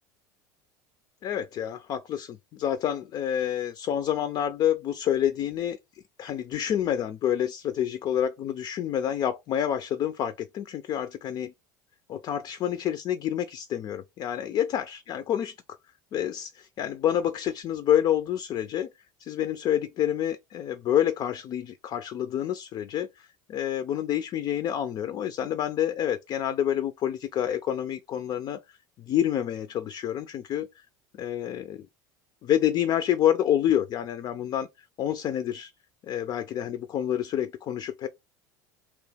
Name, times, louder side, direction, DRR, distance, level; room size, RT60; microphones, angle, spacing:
voice 1, 1.2-5.8 6.2-11.5 12.1-15.6 16.1-18.9 19.2-30.7 31.2-31.9 32.4-34.7 35.0-35.7 36.0-38.1, left 10 dB, 45° left, 0.4 m, -28 dB
3.3 x 3.0 x 3.3 m
hypercardioid pair, 90°, 10 cm